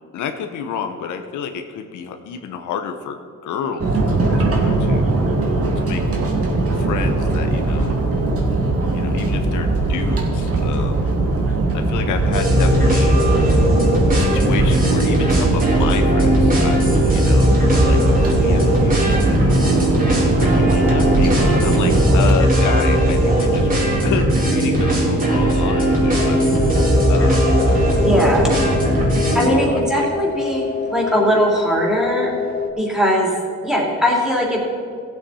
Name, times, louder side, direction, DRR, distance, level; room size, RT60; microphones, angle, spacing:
voice 1, 0.1-3.2 3.4-5.0 5.8-6.0 6.7-8.0 8.9-11.2 11.7-13.2 14.1-19.6 20.1-23.7 24.0-26.4 27.1-27.6 29.5-30.1, left 6 dB, 80° left, 6 dB, 0.9 m, -30 dB
sound 1, 3.8-22.3, right 2 dB, 50° right, 2.3 m, -20 dB
sound 2, 12.3-29.5, right 1 dB, 30° right, 3.1 m, -17 dB
sound 3, 26.1-32.7, left 6 dB, 30° left, 1.0 m, -26 dB
voice 2, 28.0-28.5 29.3-32.3 32.8-33.3 33.6-34.6, equal, ahead, -3 dB, 3.2 m, -19 dB
15.5 x 8.0 x 4.3 m, 2.1 s
cardioid pair, 90°, 30 cm